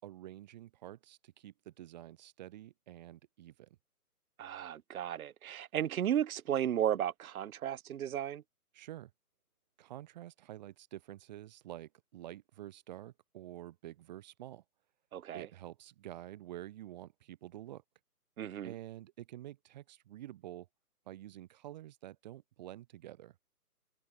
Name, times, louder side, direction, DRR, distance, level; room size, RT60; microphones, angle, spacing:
voice 1, 0.0-3.7 8.7-9.1 9.8-14.6 15.3-17.8 18.6-20.7 21.1-23.3, right 13 dB, 25° right, 3.4 m, -48 dB
voice 2, 4.4-8.4 15.1-15.5 18.4-18.7, right 10 dB, 65° right, 0.6 m, -34 dB
hypercardioid pair, 160°, 47 cm